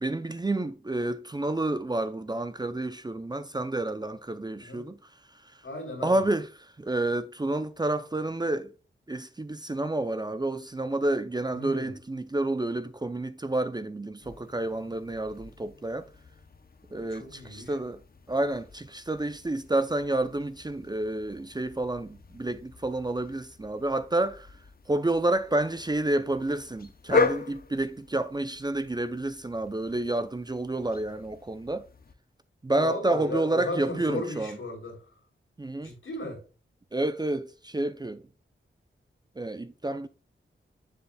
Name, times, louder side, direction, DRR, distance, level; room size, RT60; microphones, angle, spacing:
voice 1, 0.0-5.6 6.0-8.7 9.1-16.1 16.9-18.0 18.3-24.6 24.9-31.9 32.6-34.6 35.6-35.9 36.9-38.2 39.4-40.1, right 2 dB, 20° right, 0.5 m, -29 dB
voice 2, 5.6-6.2 11.5-11.9 17.1-17.7 32.8-35.0 35.8-36.4, left 2 dB, 80° left, 3.2 m, -35 dB
sound 1, 14.2-32.1, left 4 dB, 45° left, 0.7 m, -37 dB
7.2 x 7.0 x 2.2 m
wide cardioid pair, 100°, 21 cm